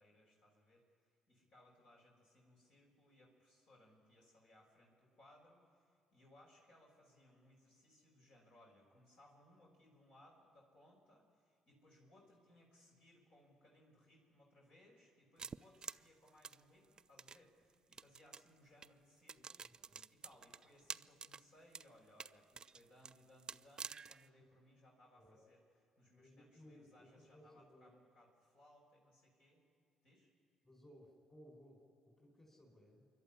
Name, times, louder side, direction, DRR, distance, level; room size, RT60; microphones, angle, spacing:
voice 1, 0.0-19.7 20.1-25.6 26.0-29.6 30.0-30.3, left 1 dB, 65° left, -3 dB, 5.8 m, -66 dB
sound 1, 15.4-17.4 17.9-18.5 18.8-18.9 19.3-21.4 21.7-21.9 22.2-24.3, right 5 dB, 40° right, 0.4 m, -49 dB
voice 2, 19.3-20.1 24.4-24.5 25.2-25.4 26.2-27.9 30.6-33.1, equal, 25° left, -1 dB, 5.2 m, -62 dB
26.0 x 11.5 x 9.9 m, 2.4 s
hypercardioid pair, 55°, 2 cm